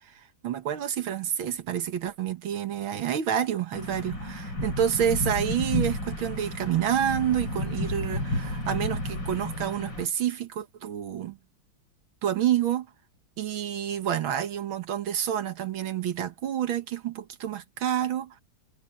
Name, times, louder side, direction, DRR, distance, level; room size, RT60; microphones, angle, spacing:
voice 1, 0.0-11.4 12.2-12.9 13.4-18.4, right 10 dB, 75° right, 2.1 m, -28 dB
sound 1, 3.7-10.1, left 1 dB, 60° left, 7.9 m, -32 dB
omnidirectional pair, 2.2 m